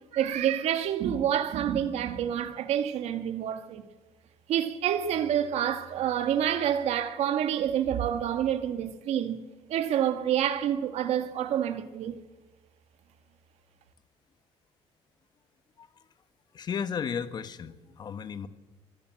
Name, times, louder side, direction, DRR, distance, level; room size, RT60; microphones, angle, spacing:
voice 1, 0.1-3.8 4.5-9.4 9.7-12.2, right 10 dB, 75° right, 1.8 m, -28 dB
voice 2, 16.5-18.5, left 7 dB, 40° left, 1.4 m, -34 dB
24.0 x 17.0 x 7.8 m
cardioid pair, 155°, 11 cm